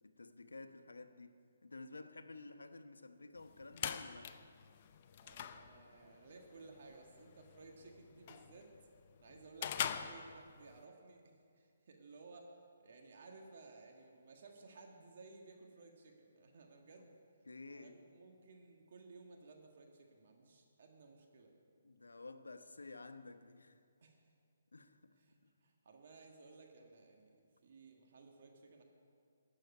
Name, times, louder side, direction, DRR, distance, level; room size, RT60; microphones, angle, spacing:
voice 1, 0.0-4.3 17.0-17.1 17.5-18.0 21.8-23.8 24.7-25.2 25.4-25.5, left 3 dB, 90° left, 0.9 m, -52 dB
sound 1, 3.4-10.8, left 8 dB, 40° left, 0.6 m, -45 dB
voice 2, 5.2-8.7 9.2-17.1 17.7-21.5 24.0-24.2 25.2-27.4 27.6-28.8, right 3 dB, 55° right, 1.7 m, -58 dB
11.5 x 7.7 x 9.5 m
hypercardioid pair, 150°, 0 cm